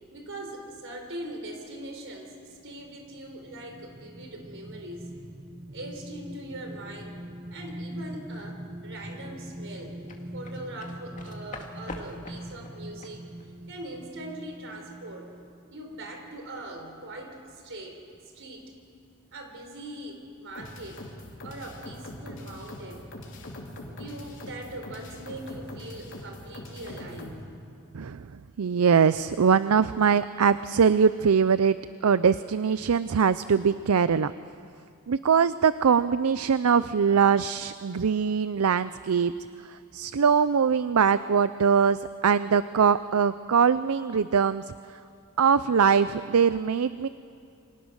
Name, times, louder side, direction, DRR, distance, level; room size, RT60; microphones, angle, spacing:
voice 1, 0.1-2.4 2.6-5.1 5.7-7.2 7.5-10.0 10.3-13.2 13.7-15.3 15.7-18.0 18.4-18.7 19.3-21.0 21.4-23.1 23.9-27.4, right 1 dB, 60° right, 3 dB, 4.2 m, -41 dB
sound 1, 2.8-15.7 16.2-16.3, right 1 dB, 30° right, 0.9 m, -42 dB
sound 2, 9.7-15.0 15.3-15.5, left 2 dB, 35° left, 2.2 m, -45 dB
sound 3, 20.5-27.4, left 1 dB, 60° left, 3.3 m, -42 dB
voice 2, 27.9-28.3 28.6-31.8 32.0-34.3 35.1-39.3 39.7-44.6 45.4-47.1, right 6 dB, 80° right, 14 dB, 0.5 m, -22 dB
28.5 x 24.0 x 6.5 m, 2.4 s
head